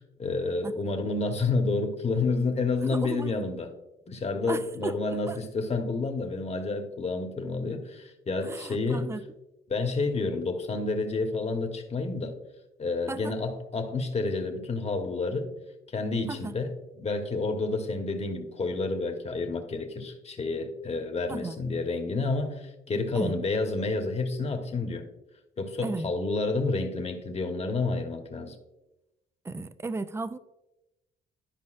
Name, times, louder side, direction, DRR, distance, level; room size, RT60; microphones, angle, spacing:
voice 1, 0.2-3.7 4.1-9.1 9.7-12.4 12.8-15.5 15.9-25.1 25.6-28.5, left 3 dB, 30° left, 4 dB, 1.2 m, -29 dB
voice 2, 2.9-3.3 4.5-5.0 5.3-5.4 8.4-9.2 13.1-13.3 16.3-16.6 21.3-21.6 23.1-23.4 25.8-26.1 29.4-30.4, right 3 dB, 15° right, 13 dB, 0.4 m, -35 dB
12.0 x 5.1 x 2.5 m, 0.95 s
cardioid pair, 90°, 20 cm